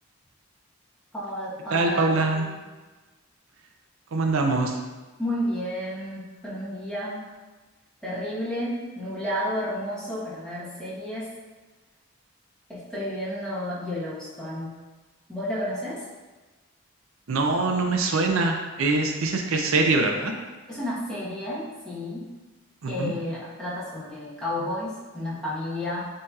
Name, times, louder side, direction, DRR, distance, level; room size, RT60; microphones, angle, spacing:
voice 1, 1.1-2.2 5.2-7.2 8.0-11.3 12.7-14.7 15.3-16.0 20.7-22.2 22.9-26.1, left 1 dB, 5° left, -8 dB, 1.0 m, -31 dB
voice 2, 1.7-2.5 4.1-4.8 17.3-20.3 22.8-23.1, right 3 dB, 80° right, 3 dB, 0.5 m, -23 dB
7.5 x 2.8 x 2.3 m, 1.2 s
head